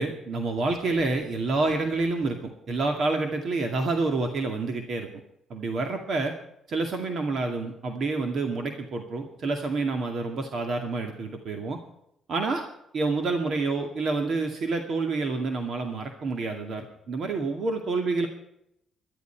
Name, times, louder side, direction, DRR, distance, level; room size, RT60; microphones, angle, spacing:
voice 1, 0.0-5.1 5.5-6.3 6.7-11.8 12.3-12.6 12.9-18.3, right 3 dB, 50° right, 4 dB, 2.2 m, -28 dB
19.5 x 12.5 x 4.6 m, 0.76 s
cardioid pair, 135°, 0 cm